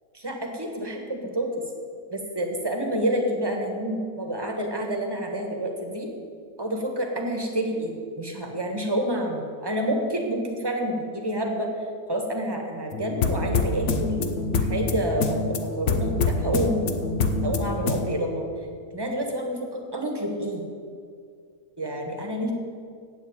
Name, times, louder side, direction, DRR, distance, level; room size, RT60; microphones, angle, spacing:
voice 1, 0.1-1.5 2.1-6.1 6.6-11.7 12.1-14.4 14.7-16.8 17.4-18.4 18.9-20.6 21.8-22.5, right 1 dB, 15° right, 2 dB, 1.4 m, -28 dB
sound 1, 12.9-18.1, left 3 dB, 55° left, 1.1 m, -26 dB
8.4 x 8.0 x 8.9 m, 2.2 s
omnidirectional pair, 1.6 m